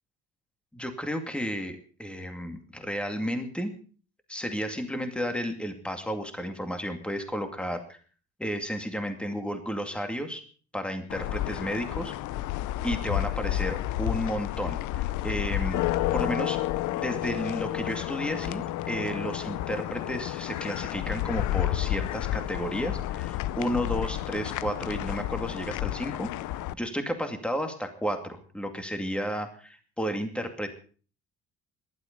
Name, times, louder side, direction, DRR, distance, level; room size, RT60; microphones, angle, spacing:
voice 1, 0.7-3.7 4.3-8.0 8.4-10.4 10.7-12.1 12.8-15.8 16.1-16.6 16.9-26.3 26.7-30.7, equal, 5° left, 6 dB, 2.3 m, -32 dB
sound 1, 11.1-26.7, left 14 dB, 85° left, 0.7 m, -31 dB
18.5 x 12.0 x 5.3 m, 0.42 s
cardioid pair, 135°, 29 cm